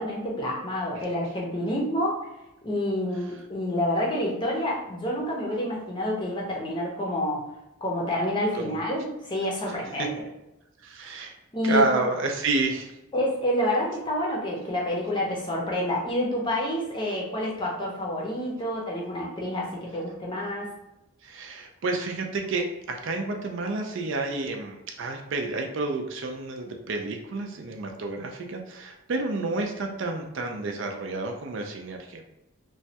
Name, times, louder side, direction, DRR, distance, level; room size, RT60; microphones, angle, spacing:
voice 1, 0.0-2.2 2.6-7.4 7.8-10.2 11.5-11.9 13.1-20.7, left 1 dB, 20° left, -2 dB, 0.6 m, -28 dB
voice 2, 10.8-11.3 11.6-12.9 21.2-32.2, right 3 dB, 60° right, 3 dB, 0.4 m, -29 dB
3.1 x 2.2 x 2.7 m, 0.92 s
head